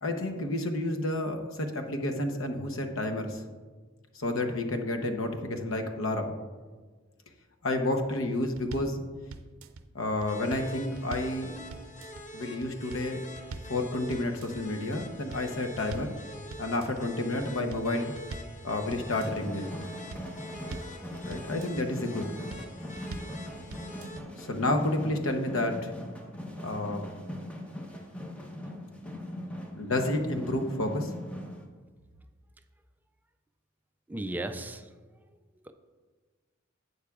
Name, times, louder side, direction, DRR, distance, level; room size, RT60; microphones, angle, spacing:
voice 1, 0.0-3.4 4.1-6.3 7.6-9.0 9.9-11.5 12.3-13.2 13.7-16.2 16.6-18.1 18.6-19.7 21.2-22.4 24.4-25.9 26.6-27.1 29.8-31.1, left 1 dB, 75° left, 4 dB, 0.9 m, -30 dB
sound 1, 8.6-9.0 9.3-9.8 10.2-11.4 11.7-12.2 12.6-13.1 13.4-13.8 14.1-14.6 15.0-16.2 16.5-17.0 17.4-18.6 18.9-19.4 19.8-21.0 21.3-21.8 22.2-22.7 23.0-23.4 23.7-24.2, right 3 dB, 85° right, 0.5 m, -43 dB
sound 2, 10.3-24.2, left 1 dB, 40° left, 0.8 m, -46 dB
sound 3, 18.9-31.6, left 1 dB, 5° left, 0.8 m, -41 dB
voice 2, 34.1-34.9 35.6-35.7, right 1 dB, 10° right, 8 dB, 0.3 m, -35 dB
11.5 x 8.2 x 2.4 m, 1.4 s
head